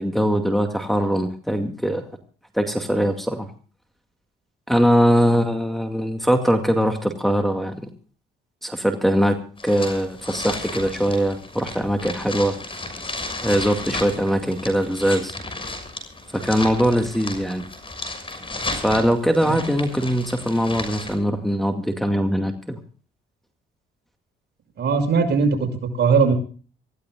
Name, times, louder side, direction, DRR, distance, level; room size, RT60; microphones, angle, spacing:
voice 1, 0.0-2.0 2.5-3.5 4.7-7.9 8.6-9.4 9.6-12.5 13.4-15.3 16.3-17.6 18.8-22.8, equal, ahead, 3 dB, 2.3 m, -21 dB
sound 1, 9.6-21.1, left 2 dB, 25° left, 6.4 m, -33 dB
voice 2, 24.8-26.3, right 5 dB, 60° right, 4 dB, 6.1 m, -19 dB
26.0 x 16.0 x 2.4 m, 0.40 s
cardioid pair, 90°, 20 cm